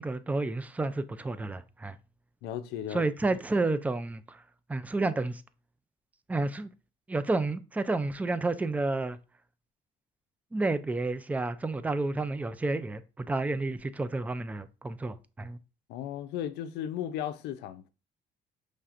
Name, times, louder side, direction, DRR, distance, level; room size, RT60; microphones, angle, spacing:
voice 1, 0.0-2.0 2.9-4.4 4.7-5.4 6.3-6.7 7.1-9.2 10.5-15.6, right 2 dB, 10° right, 0.3 m, -30 dB
voice 2, 2.4-3.0 15.9-17.9, left 10 dB, 90° left, 0.5 m, -35 dB
5.6 x 3.3 x 2.5 m
cardioid pair, 110°, 17 cm